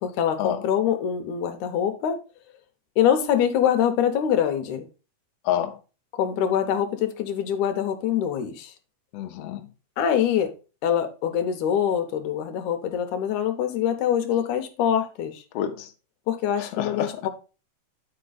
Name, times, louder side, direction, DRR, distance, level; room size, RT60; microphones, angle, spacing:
voice 1, 0.0-2.2 3.0-4.8 6.1-8.7 10.0-10.5 10.8-15.4 16.3-17.3, left 9 dB, 70° left, 2.2 m, -24 dB
voice 2, 5.4-5.8 9.1-9.7 15.5-15.9 16.6-17.2, left 10 dB, 90° left, 1.3 m, -28 dB
9.3 x 4.5 x 4.0 m
omnidirectional pair, 3.9 m